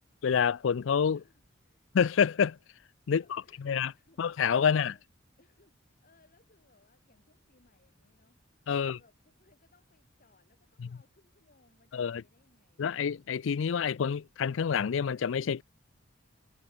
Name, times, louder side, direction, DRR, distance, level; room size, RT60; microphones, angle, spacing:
voice 1, 0.2-1.2 1.9-2.6 3.1-3.9 4.2-4.9 8.7-9.0 10.8-10.9 11.9-12.2 12.8-15.6, left 7 dB, 70° left, 0.4 m, -27 dB
voice 2, 1.1-1.9 3.1-5.1 5.4-8.4 8.8-12.9, left 2 dB, 45° left, 5.4 m, -66 dB
head